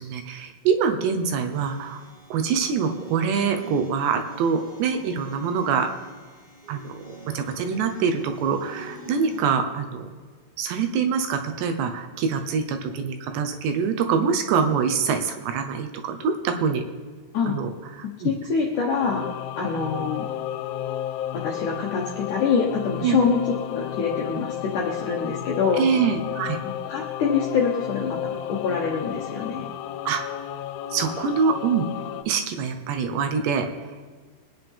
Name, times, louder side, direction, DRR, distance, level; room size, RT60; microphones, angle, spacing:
voice 1, 0.0-2.0 2.3-5.9 6.7-10.1 10.6-16.8 17.5-18.3 23.0-23.2 25.7-26.6 30.1-30.2 30.9-31.9 32.3-33.7, right 6 dB, 75° right, 6 dB, 2.9 m, -25 dB
sound 1, 1.5-9.5, right 1 dB, 15° right, 1.8 m, -42 dB
voice 2, 18.2-19.3 19.6-20.3 21.3-23.4 23.7-25.8 26.8-29.6, left 5 dB, 75° left, -1 dB, 1.8 m, -25 dB
Singing / Musical instrument, 18.9-32.2, left 11 dB, 90° left, 3.1 m, -32 dB
24.0 x 9.5 x 3.6 m, 1.5 s
omnidirectional pair, 5.4 m